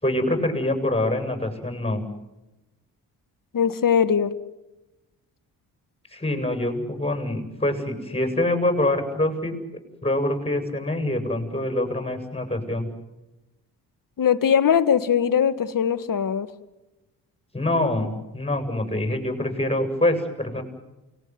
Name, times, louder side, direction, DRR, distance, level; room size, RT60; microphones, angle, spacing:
voice 1, 0.0-2.0 6.1-9.5 10.0-12.9 17.5-20.6, left 1 dB, 10° left, 6 dB, 7.9 m, -25 dB
voice 2, 3.5-4.3 14.2-16.5, left 8 dB, 45° left, 12 dB, 1.7 m, -20 dB
29.0 x 20.0 x 9.6 m, 1.0 s
hypercardioid pair, 40°, 45 cm